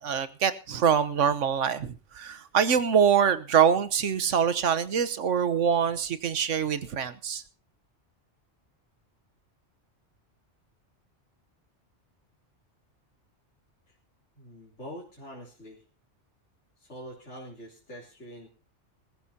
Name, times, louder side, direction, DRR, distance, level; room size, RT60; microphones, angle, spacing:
voice 1, 0.0-7.4, right 7 dB, 85° right, 13 dB, 1.4 m, -24 dB
voice 2, 14.4-15.8 16.8-18.5, equal, 70° left, -5 dB, 3.5 m, -44 dB
21.0 x 14.0 x 2.8 m, 0.33 s
omnidirectional pair, 1.2 m